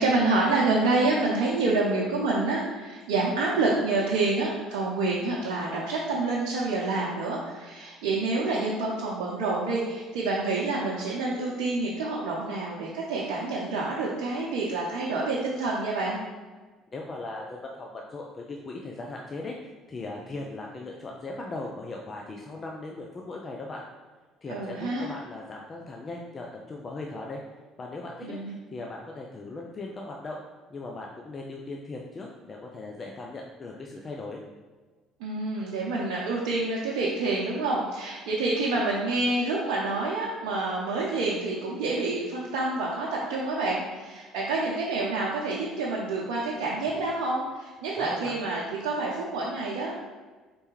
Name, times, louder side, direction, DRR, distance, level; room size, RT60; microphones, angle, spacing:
voice 1, 0.0-16.2 24.5-25.1 28.2-28.5 35.2-49.9, right 3 dB, 80° right, -4 dB, 0.6 m, -28 dB
voice 2, 16.9-23.8 24.4-27.4 27.8-30.4 30.7-34.4 48.0-48.4, left 2 dB, 35° left, 0 dB, 0.5 m, -38 dB
4.4 x 3.3 x 3.1 m, 1.3 s
hypercardioid pair, 70°, 0 cm